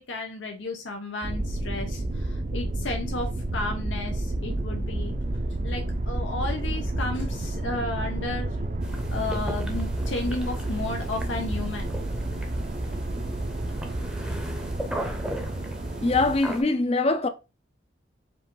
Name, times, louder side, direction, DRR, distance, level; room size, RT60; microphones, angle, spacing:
voice 1, 0.0-5.1 5.6-8.6 9.1-11.9, left 2 dB, 90° left, 0.8 m, -33 dB
sound 1, 1.2-16.4, right 1 dB, 40° right, 0.5 m, -30 dB
sound 2, 8.8-16.6, equal, 5° right, 0.7 m, -37 dB
voice 2, 16.0-17.3, left 3 dB, 35° left, 0.4 m, -23 dB
4.8 x 2.5 x 3.7 m
head